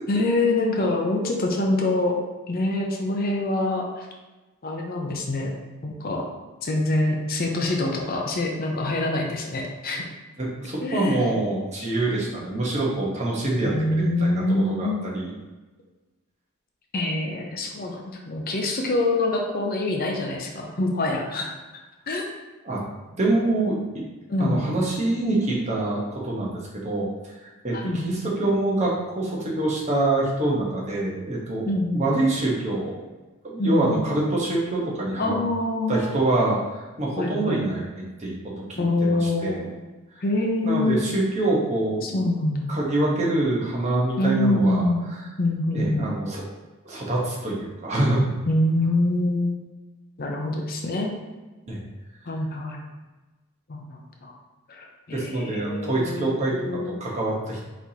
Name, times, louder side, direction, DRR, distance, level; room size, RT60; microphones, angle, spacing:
voice 1, 0.1-2.1 2.5-4.1 4.6-5.5 5.8-6.2 6.6-10.0 10.8-11.2 11.8-11.9 13.6-15.0 16.9-21.5 22.1-22.2 24.3-24.7 27.7-28.1 31.7-32.1 33.6-34.0 35.2-36.2 37.2-37.6 38.8-39.7 40.2-41.1 42.0-42.7 44.2-45.0 45.4-46.1 48.5-49.6 50.2-51.1 52.3-52.8 53.7-54.3 54.7-57.0, left 2 dB, 40° left, 1 dB, 0.6 m, -25 dB
voice 2, 10.4-15.3 22.6-22.8 23.2-24.0 24.4-31.7 31.9-32.9 33.4-35.4 35.9-37.8 38.2-38.4 39.0-39.6 40.6-42.2 42.7-44.9 45.7-46.4 46.8-48.3 51.7-51.8 55.1-56.5 56.8-57.6, right 2 dB, 30° right, -4 dB, 1.0 m, -25 dB
4.5 x 4.1 x 2.8 m, 1.2 s
head